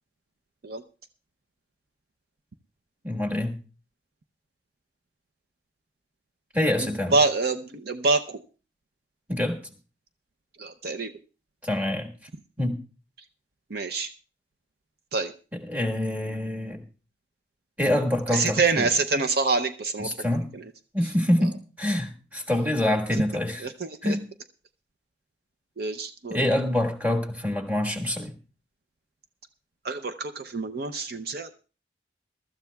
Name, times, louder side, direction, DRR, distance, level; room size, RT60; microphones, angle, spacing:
voice 1, 3.0-3.6 6.5-7.1 9.3-9.6 11.6-12.1 12.6-12.8 15.7-16.8 17.8-18.9 20.0-20.5 20.9-23.7 24.0-24.2 26.3-28.4, left 1 dB, 10° right, 1 dB, 1.5 m, -26 dB
voice 2, 6.8-8.4 10.6-11.1 13.7-14.1 15.1-15.3 18.3-20.1 20.5-20.6 23.6-24.2 25.8-26.4 29.8-31.5, right 3 dB, 55° right, 8 dB, 0.6 m, -26 dB
22.5 x 13.0 x 2.3 m, 0.35 s
head